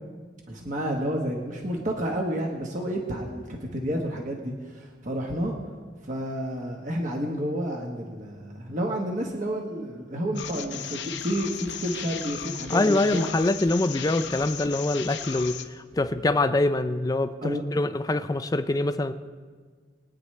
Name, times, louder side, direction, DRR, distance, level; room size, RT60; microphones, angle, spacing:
voice 1, 0.5-5.5 6.0-13.3 17.4-17.6, equal, 45° right, 0 dB, 1.3 m, -30 dB
sound 1, 10.4-15.6, left 8 dB, 75° left, 0.8 m, -36 dB
voice 2, 12.7-19.1, left 2 dB, 20° left, 11 dB, 0.4 m, -24 dB
22.0 x 9.5 x 3.3 m, 1.5 s
head